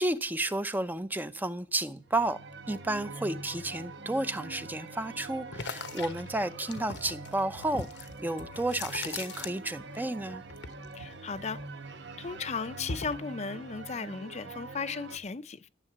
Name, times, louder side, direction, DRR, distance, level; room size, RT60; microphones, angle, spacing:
voice 1, 0.0-2.4 2.7-10.4, right 1 dB, 10° right, 0.6 m, -32 dB
sound 1, 2.1-15.2, right 3 dB, 90° right, 1.0 m, -44 dB
sound 2, 5.5-10.0 10.3-11.9 12.3-13.3, left 4 dB, 85° left, 1.2 m, -40 dB
voice 2, 10.9-11.6 12.2-15.7, left 5 dB, 40° left, 0.6 m, -36 dB
12.5 x 7.6 x 8.5 m
head